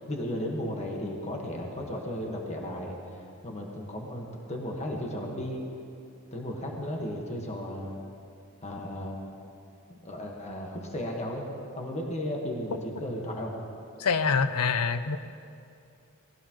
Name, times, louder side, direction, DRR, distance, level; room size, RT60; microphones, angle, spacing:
voice 1, 0.0-3.0 3.4-5.6 6.3-8.0 8.6-9.2 9.9-13.5, equal, 30° left, 0 dB, 1.6 m, -35 dB
voice 2, 14.0-15.2, left 5 dB, 90° left, 11 dB, 0.7 m, -25 dB
18.5 x 15.5 x 3.1 m, 2.5 s
head